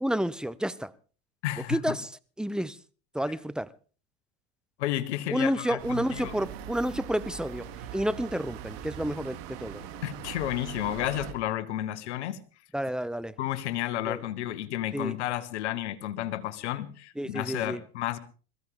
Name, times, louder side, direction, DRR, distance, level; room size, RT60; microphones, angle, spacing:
voice 1, 0.0-0.9 1.7-2.1 2.4-2.8 3.1-3.7 5.3-7.6 7.9-9.8 12.7-13.3 14.1-14.2 14.9-15.1 17.2-17.8, right 1 dB, ahead, 0.7 m, -30 dB
voice 2, 1.4-2.0 4.8-6.3 10.0-12.4 13.4-18.2, left 13 dB, 90° left, 1.4 m, -32 dB
sound 1, 5.8-11.3, right 8 dB, 70° right, 2.8 m, -41 dB
21.5 x 15.0 x 3.7 m
supercardioid pair, 95°, 34 cm